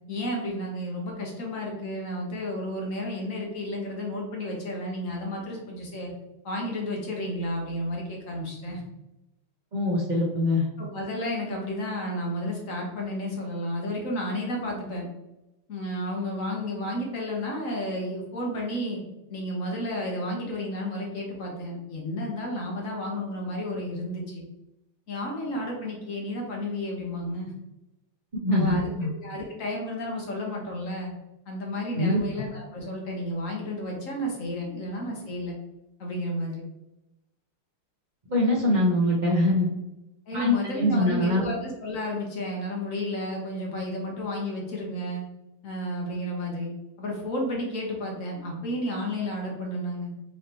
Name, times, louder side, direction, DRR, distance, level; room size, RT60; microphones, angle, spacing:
voice 1, 0.1-6.1 6.4-8.8 10.8-15.1 15.7-19.0 19.3-24.4 25.1-27.5 28.5-28.9 29.2-31.1 31.5-35.5 36.0-36.6 40.3-45.2 45.6-46.7 47.0-50.1, left 1 dB, 50° left, -1 dB, 1.1 m, -32 dB
voice 2, 9.7-10.6 28.4-29.1 31.9-32.2 38.3-39.7 40.3-41.5, left 1 dB, 85° right, -6 dB, 0.4 m, -23 dB
5.7 x 3.3 x 2.9 m, 0.95 s
omnidirectional pair, 2.4 m